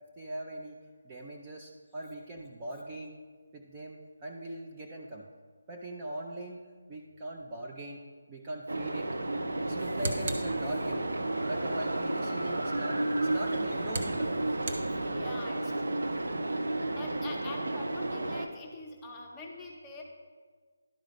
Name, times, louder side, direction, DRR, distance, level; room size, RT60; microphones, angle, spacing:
voice 1, 0.2-0.8 1.0-3.1 3.5-5.3 5.7-6.6 6.9-8.0 8.3-9.1 9.6-11.2 11.5-14.4 17.0-17.1 17.8-17.9, right 1 dB, 20° right, -1 dB, 0.5 m, -41 dB
sound 1, 8.7-18.5, right 2 dB, 85° right, 0.6 m, -32 dB
sound 2, 9.6-11.2 13.2-15.5, right 2 dB, 45° right, 0.8 m, -39 dB
voice 2, 14.9-16.1 16.9-20.0, left 3 dB, 10° left, -2 dB, 0.8 m, -45 dB
11.5 x 3.9 x 4.9 m, 1.6 s
figure-of-eight pair, 165°, 0 cm